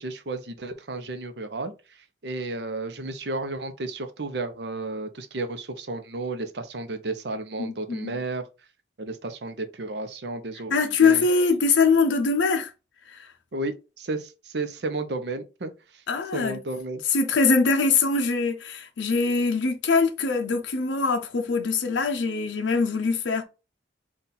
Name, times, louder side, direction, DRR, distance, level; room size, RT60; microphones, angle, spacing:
voice 1, 0.0-1.7 2.2-8.5 9.0-11.2 13.5-15.7 16.3-17.0, right 2 dB, 60° right, 0.7 m, -32 dB
voice 2, 7.6-8.1 10.7-12.7 13.1-13.3 16.1-16.6 17.1-23.4, left 4 dB, 80° left, 0.6 m, -23 dB
4.1 x 2.4 x 3.9 m
head